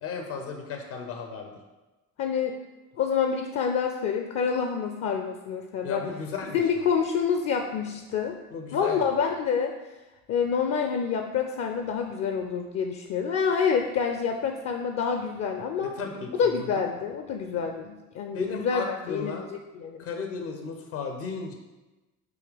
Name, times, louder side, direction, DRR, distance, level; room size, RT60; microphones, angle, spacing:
voice 1, 0.0-1.5 5.8-6.8 8.5-9.1 15.8-16.9 18.3-19.5 20.0-21.5, left 5 dB, 65° left, 3 dB, 1.0 m, -35 dB
voice 2, 2.2-2.6 3.0-6.0 6.5-8.4 8.7-9.7 10.3-15.9 16.4-20.0, left 6 dB, 40° left, 5 dB, 0.6 m, -27 dB
7.8 x 2.9 x 5.1 m, 1.1 s
figure-of-eight pair, 50°, 43 cm